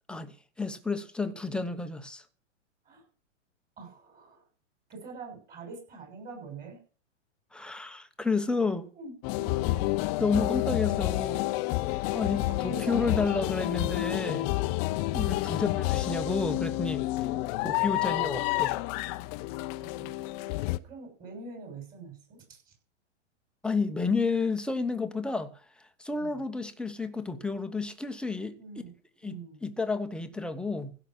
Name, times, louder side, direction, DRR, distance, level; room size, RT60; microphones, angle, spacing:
voice 1, 0.1-2.2 7.5-8.9 10.2-11.5 12.1-14.5 15.1-17.1 17.6-18.8 23.6-28.6 29.2-31.0, left 4 dB, 5° left, 0.9 m, -31 dB
voice 2, 3.8-4.5 4.9-6.8 8.9-9.8 12.0-13.2 15.3-15.6 17.2-17.4 19.8-22.7 26.1-26.4 28.6-28.9 29.2-29.6, right 4 dB, 25° right, 6.5 m, -45 dB
sound 1, 9.2-20.8, left 19 dB, 30° left, 0.7 m, -29 dB
16.0 x 5.9 x 7.6 m
hypercardioid pair, 135°, 36 cm